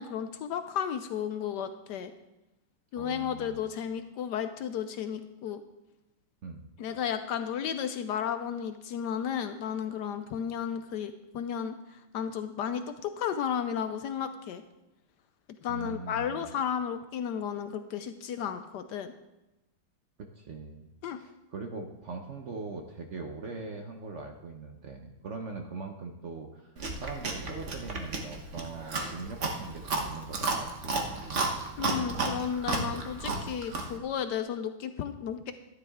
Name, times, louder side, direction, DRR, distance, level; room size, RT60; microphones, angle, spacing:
voice 1, 0.0-2.1 2.9-5.6 6.8-14.6 15.6-19.1 21.0-21.2 31.8-35.5, left 8 dB, 75° left, 9 dB, 0.9 m, -33 dB
voice 2, 3.0-3.6 6.4-6.7 15.7-16.4 20.2-20.9 21.2-30.7 31.0-31.3, right 4 dB, 60° right, 4 dB, 0.7 m, -41 dB
Chewing mastication, 26.8-34.0, right 3 dB, 40° right, 1.3 m, -33 dB
12.5 x 11.0 x 3.6 m, 0.96 s
omnidirectional pair, 2.3 m